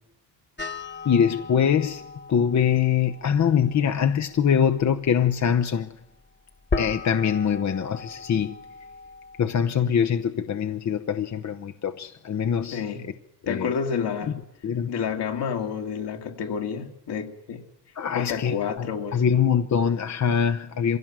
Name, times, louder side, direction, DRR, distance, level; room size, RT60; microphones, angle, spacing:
sound 1, 0.6-9.4, left 3 dB, 25° left, 1.4 m, -37 dB
voice 1, 1.0-5.9 6.8-8.6 9.4-12.8 13.4-13.7 14.6-14.9 18.0-21.0, left 8 dB, 40° left, 0.9 m, -23 dB
voice 2, 12.7-13.1 13.5-14.4 14.9-17.6 18.1-19.4, left 7 dB, 65° left, 2.6 m, -29 dB
22.0 x 16.0 x 7.5 m
supercardioid pair, 70°, 44 cm